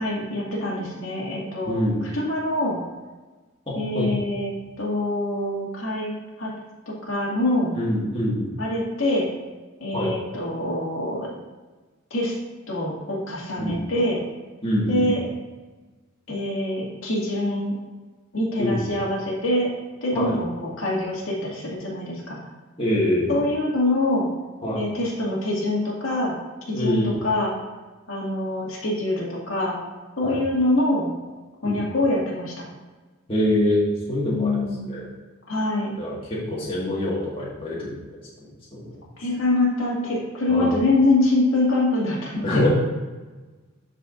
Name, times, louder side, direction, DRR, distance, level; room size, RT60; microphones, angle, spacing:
voice 1, 0.0-2.8 3.7-4.5 4.8-6.1 6.4-6.5 7.1-7.7 8.6-9.3 9.8-11.3 12.1-12.3 12.7-14.2 14.9-15.2 16.3-17.7 18.3-19.7 20.0-22.4 23.3-24.3 24.7-26.3 26.7-27.6 28.1-29.8 30.2-31.1 31.6-32.7 34.3-34.9 35.5-35.9 39.2-42.7, left 2 dB, 85° left, -4 dB, 2.2 m, -24 dB
voice 2, 1.6-2.0 3.7-4.1 7.7-8.5 9.9-10.1 13.6-13.8 14.6-15.1 18.6-18.9 20.1-20.4 22.8-23.5 24.6-24.9 26.7-27.2 30.2-30.4 31.6-31.8 33.3-35.1 36.0-37.9 38.7-39.0 40.5-40.8 42.4-42.7, left 1 dB, 25° left, -6 dB, 1.8 m, -25 dB
12.5 x 4.9 x 2.6 m, 1.3 s
head